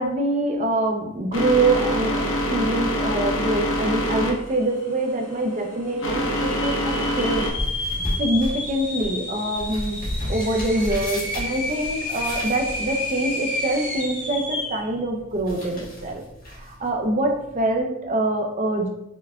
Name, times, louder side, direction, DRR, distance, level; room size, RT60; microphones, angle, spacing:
voice 1, 0.0-7.4 8.2-10.0 10.3-16.2 16.5-18.9, right 2 dB, 35° right, 2 dB, 0.5 m, -25 dB
sound 1, 1.3-7.5, equal, 65° left, 0.6 m, -25 dB
sound 2, 4.3-4.8 5.3-5.4 6.1-14.9, left 1 dB, 10° left, 1.0 m, -31 dB
sound 3, 6.8-17.8, left 1 dB, 45° left, 1.2 m, -35 dB
5.4 x 2.3 x 2.3 m, 0.85 s
head